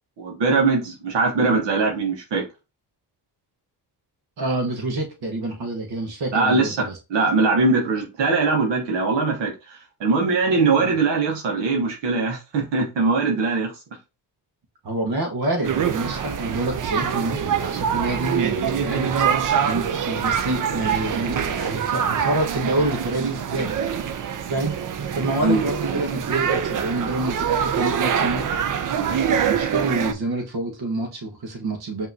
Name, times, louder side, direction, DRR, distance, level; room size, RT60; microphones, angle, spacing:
voice 1, 0.2-2.4 6.3-13.7 25.4-25.7, right 3 dB, 90° right, 1.3 m, -21 dB
voice 2, 4.4-7.0 10.5-10.9 14.8-23.8 24.5-24.8 25.1-28.5 29.0-32.1, right 2 dB, 65° right, 1.3 m, -27 dB
sound 1, 15.6-30.1, right 8 dB, 50° right, 0.6 m, -24 dB
5.6 x 2.9 x 2.7 m
cardioid pair, 90°, 42 cm